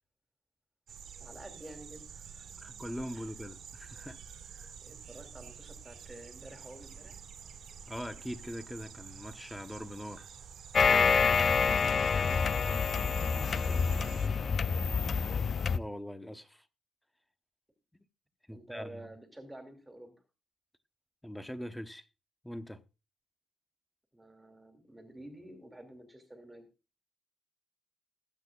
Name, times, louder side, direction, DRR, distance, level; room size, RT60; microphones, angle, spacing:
sound 1, 0.9-14.3, right 7 dB, 70° right, 1.8 m, -49 dB
voice 1, 1.2-2.5 3.1-3.2 4.8-7.2 13.2-14.9 18.5-20.2 24.1-26.7, right 1 dB, 10° right, 2.5 m, -51 dB
voice 2, 2.6-4.2 4.5-4.7 7.9-10.3 15.7-16.7 17.9-18.1 18.5-19.1 21.2-22.1 22.4-22.8, equal, 5° left, 1.1 m, -42 dB
sound 2, 10.7-15.8, left 5 dB, 45° left, 0.4 m, -27 dB
20.5 x 8.3 x 2.5 m
cardioid pair, 90°, 0 cm